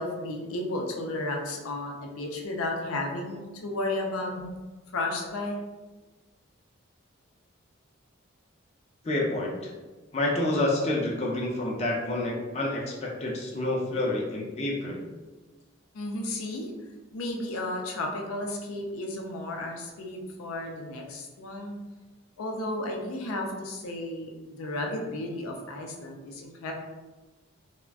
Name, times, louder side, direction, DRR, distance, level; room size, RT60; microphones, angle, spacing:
voice 1, 0.0-4.5 4.9-5.6 15.9-16.7 17.1-21.8 22.4-26.7, left 2 dB, 85° left, 1 dB, 0.4 m, -33 dB
voice 2, 9.0-9.7 10.1-15.0, left 1 dB, 30° left, -2 dB, 0.4 m, -28 dB
2.4 x 2.1 x 3.4 m, 1.2 s
head